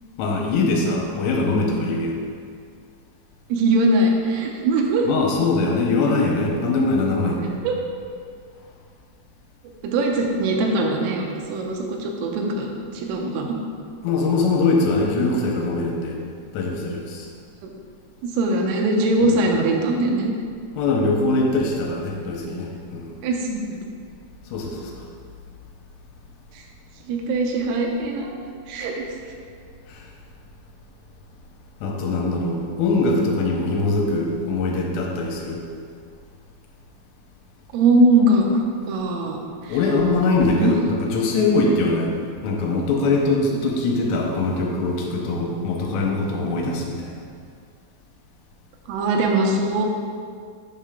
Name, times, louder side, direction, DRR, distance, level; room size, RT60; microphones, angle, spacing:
voice 1, 0.2-2.2 5.1-7.4 14.0-16.2 16.5-17.3 19.2-19.4 20.8-23.1 24.5-25.1 29.9-30.0 31.8-35.6 39.7-42.2 42.4-47.2, left 3 dB, 85° left, -1 dB, 3.2 m, -22 dB
voice 2, 3.5-5.1 7.6-7.7 9.8-13.6 17.6-17.7 18.2-20.3 23.2-23.8 26.5-26.6 27.1-28.4 28.7-29.1 32.1-32.3 37.7-38.4 38.9-40.0 40.6-40.8 48.9-49.9, right 2 dB, 85° right, 1 dB, 3.3 m, -21 dB
8.3 x 5.5 x 3.7 m, 2.2 s
omnidirectional pair, 5.9 m